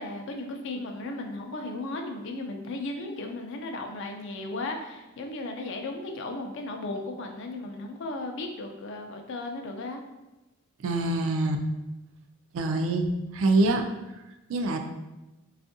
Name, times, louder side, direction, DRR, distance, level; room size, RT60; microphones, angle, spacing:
voice 1, 0.0-10.0, left 2 dB, 55° left, 3 dB, 0.4 m, -35 dB
voice 2, 10.8-11.6 12.5-13.1 13.3-13.8 14.5-14.8, right 2 dB, 65° right, 5 dB, 0.3 m, -24 dB
3.4 x 2.4 x 2.6 m, 1.0 s
head